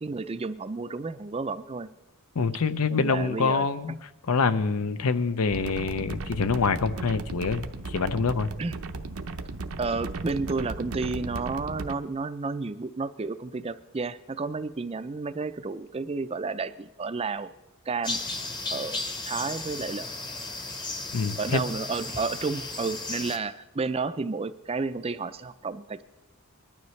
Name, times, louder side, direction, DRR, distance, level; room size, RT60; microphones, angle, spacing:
voice 1, 0.0-1.9 2.9-3.7 8.6-8.7 9.8-17.5 17.9-18.2 18.7-20.1 21.4-26.0, right 4 dB, 25° right, 12 dB, 0.4 m, -31 dB
voice 2, 2.3-8.5 21.1-21.6, left 4 dB, 80° left, 13 dB, 0.6 m, -26 dB
sound 1, 5.5-11.9, right 3 dB, 75° right, 0.7 m, -36 dB
sound 2, 18.0-23.4, left 2 dB, 20° left, 0.9 m, -35 dB
20.5 x 12.0 x 3.2 m, 1.0 s
head